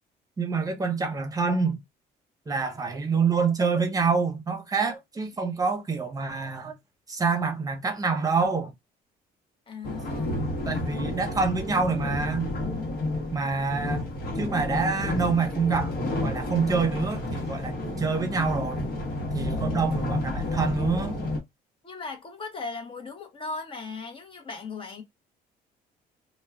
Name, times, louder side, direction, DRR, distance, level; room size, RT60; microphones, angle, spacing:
voice 1, 0.4-1.8 2.5-6.7 7.1-8.7 10.7-12.5 13.3-14.0 14.4-18.9 19.3-21.2, right 5 dB, 20° right, 0.8 m, -27 dB
voice 2, 9.7-10.5 21.8-25.0, left 4 dB, 30° left, 0.8 m, -37 dB
sound 1, 9.8-21.4, left 2 dB, 60° left, 1.1 m, -30 dB
2.2 x 2.2 x 3.4 m
cardioid pair, 110°, 17 cm